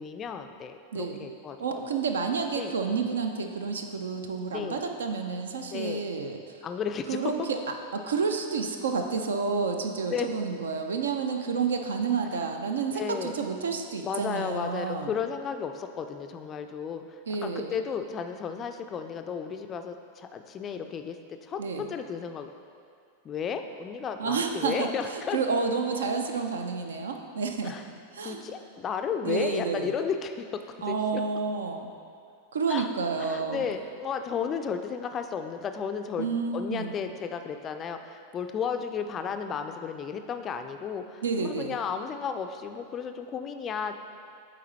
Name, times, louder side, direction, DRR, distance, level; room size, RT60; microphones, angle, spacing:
voice 1, 0.0-1.6 2.6-2.7 4.5-4.8 5.7-6.0 6.6-7.5 10.1-10.3 12.9-13.3 14.0-22.5 23.2-25.4 27.6-27.8 28.2-30.6 30.9-31.2 32.7-32.9 33.3-36.3 36.5-44.0, left 6 dB, 25° left, 7 dB, 0.3 m, -33 dB
voice 2, 0.9-1.2 1.6-6.4 7.1-7.6 7.9-15.2 17.3-17.8 21.6-21.9 24.2-27.7 28.1-28.5 29.2-29.9 30.8-31.9 32.5-33.7 36.2-36.9 41.2-41.8, right 5 dB, 65° right, 5 dB, 0.4 m, -30 dB
8.3 x 3.9 x 3.2 m, 2.3 s
figure-of-eight pair, 90°, 0 cm